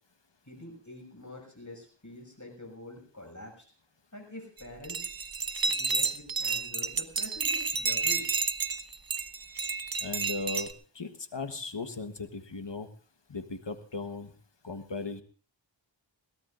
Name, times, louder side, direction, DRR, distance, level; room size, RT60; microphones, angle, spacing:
voice 1, 0.4-3.7 4.1-5.1 5.7-8.5, left 1 dB, 40° left, 2 dB, 6.5 m, -46 dB
sound 1, 4.6-10.7, right 4 dB, 50° right, 0.8 m, -30 dB
voice 2, 10.0-12.9 13.3-14.3 14.6-15.2, left 3 dB, 65° left, 9 dB, 1.4 m, -37 dB
21.5 x 17.5 x 2.6 m, 0.40 s
wide cardioid pair, 40°, 47 cm